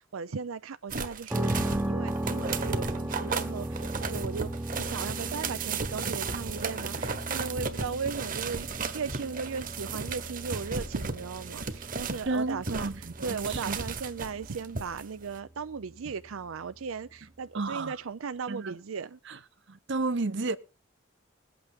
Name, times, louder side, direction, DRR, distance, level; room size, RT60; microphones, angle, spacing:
voice 1, 0.0-19.2, right 5 dB, 90° right, 0.6 m, -37 dB
sound 1, 0.9-12.3 12.6-15.0 15.3-15.4, right 4 dB, 40° right, 1.4 m, -35 dB
sound 2, 1.3-17.1, right 1 dB, 10° right, 0.7 m, -37 dB
voice 2, 12.3-13.8 17.5-18.0 18.5-18.8 19.3-19.4 19.7-20.6, right 3 dB, 60° right, 0.9 m, -32 dB
21.0 x 8.6 x 3.7 m
head